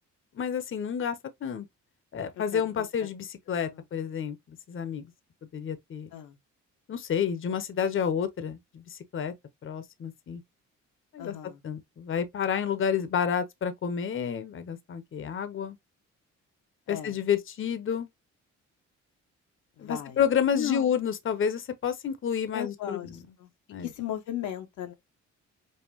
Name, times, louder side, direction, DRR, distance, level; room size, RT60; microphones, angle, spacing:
voice 1, 0.3-1.6 2.1-5.1 5.5-6.1 6.9-9.3 9.6-10.4 11.1-11.3 11.6-15.8 16.9-18.1 19.8-23.1 23.7-23.9, left 7 dB, 45° left, 0.8 m, -30 dB
voice 2, 2.4-3.1 3.7-3.8 6.1-6.4 11.2-11.6 16.9-17.2 19.8-20.2 20.5-21.0 22.5-23.1 23.4-23.5 23.8-24.9, left 11 dB, 85° left, 0.9 m, -36 dB
5.4 x 2.1 x 3.1 m
cardioid pair, 90°, 30 cm